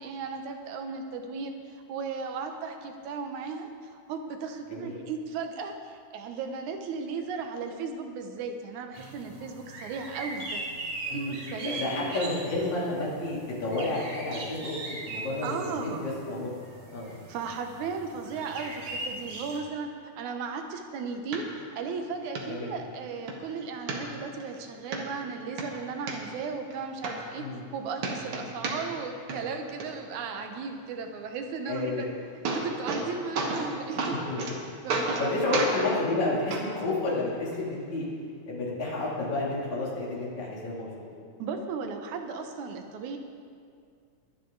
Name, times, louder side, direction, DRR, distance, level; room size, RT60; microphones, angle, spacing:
voice 1, 0.0-10.6 11.1-12.1 15.4-16.1 17.3-32.1 32.4-34.2 34.8-35.6 41.4-43.2, right 5 dB, 90° right, 5 dB, 2.5 m, -36 dB
sound 1, 8.9-19.6, right 2 dB, 70° right, 3.9 m, -40 dB
voice 2, 11.1-11.4 11.6-16.5 16.9-17.1 22.5-22.7 27.4-27.7 28.4-28.5 31.7-32.0 34.2-34.6 35.2-38.1 38.5-40.9, left 2 dB, 75° left, -6 dB, 4.4 m, -31 dB
sound 2, 21.3-21.4 21.9-22.0 22.4-22.5 22.9-23.4 23.9-24.5 24.9-25.0 25.4-26.2 26.7-26.8 27.0-27.7 28.0-29.0 29.3-29.9 31.9-32.0 32.2-33.1 33.4-33.7 34.0-34.5 34.9-35.3 35.5-35.8 36.5-36.6 37.5-37.6, right 3 dB, 55° right, 2.2 m, -31 dB
21.5 x 9.9 x 3.9 m, 2.2 s
omnidirectional pair, 3.3 m